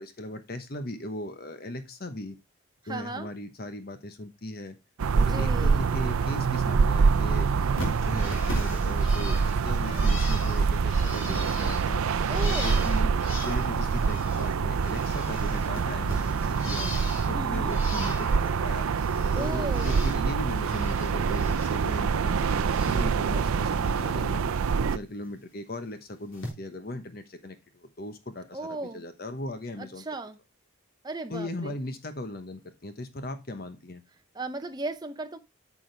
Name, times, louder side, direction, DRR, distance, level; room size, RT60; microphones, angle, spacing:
voice 1, 0.0-2.4 2.9-4.8 5.1-7.5 7.8-12.0 12.4-13.1 13.4-16.9 17.3-18.9 19.3-24.5 24.8-30.0 31.3-34.0, left 1 dB, 45° left, 1.0 m, -38 dB
voice 2, 2.9-3.3 5.2-5.9 12.3-12.7 17.3-17.7 19.3-20.0 28.5-29.0 29.8-30.4 31.0-31.7 34.3-35.4, right 2 dB, 20° right, 0.7 m, -35 dB
sound 1, 5.0-25.0, right 5 dB, 90° right, 0.5 m, -25 dB
Bird, 7.8-14.6 14.8-17.3 17.7-18.5 18.8-20.2 20.5-21.7 22.1-23.1 23.5-23.9 25.2-25.3 26.3-26.5, left 2 dB, 80° left, 3.6 m, -40 dB
9.0 x 6.2 x 3.3 m
head